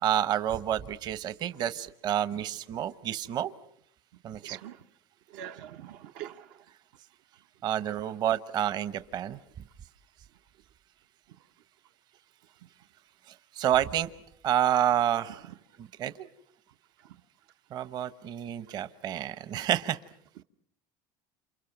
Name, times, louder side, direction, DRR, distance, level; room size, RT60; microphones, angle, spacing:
voice 1, 0.0-3.5 4.2-4.6 7.6-9.4 13.6-14.1 14.4-15.5 15.8-16.3 17.7-20.0, right 11 dB, 40° right, 1.0 m, -29 dB
voice 2, 4.4-4.8 5.3-6.6, right 11 dB, 75° right, 1.0 m, -43 dB
29.0 x 28.5 x 6.0 m
cardioid pair, 150°, 10 cm